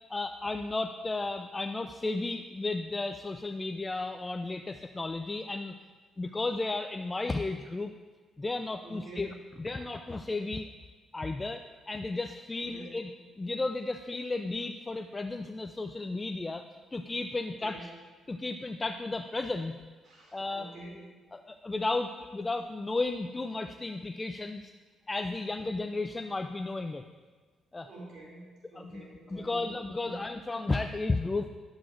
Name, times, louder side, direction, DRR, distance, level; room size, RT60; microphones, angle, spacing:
voice 1, 0.1-5.7 6.2-7.9 8.4-9.3 9.6-10.7 11.1-13.1 13.4-16.6 16.9-17.9 18.3-19.8 20.3-20.7 21.3-24.7 25.1-27.0 27.7-27.9 28.8-29.0 29.3-31.6, left 3 dB, 20° left, 7 dB, 0.3 m, -33 dB
voice 2, 8.8-9.4 12.6-13.0 17.4-17.9 20.0-21.1 27.8-29.7 30.0-30.2, right 2 dB, 75° right, -5 dB, 2.7 m, -47 dB
11.0 x 7.4 x 2.5 m, 1.4 s
cardioid pair, 90°, 0 cm